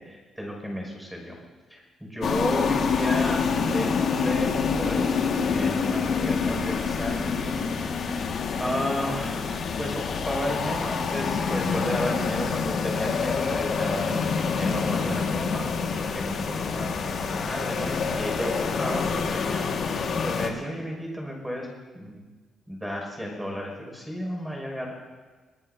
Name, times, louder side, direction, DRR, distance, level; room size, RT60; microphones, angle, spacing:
voice 1, 0.0-1.4 1.7-5.1 5.4-8.1 8.6-9.5 9.8-15.7 16.1-16.9 17.2-21.7 21.9-22.2 22.7-24.9, left 1 dB, 5° right, 0 dB, 5.9 m, -32 dB
sound 1, 2.2-20.5, left 5 dB, 60° left, 1.8 m, -27 dB
26.0 x 19.5 x 2.7 m, 1.4 s
cardioid pair, 120°, 0 cm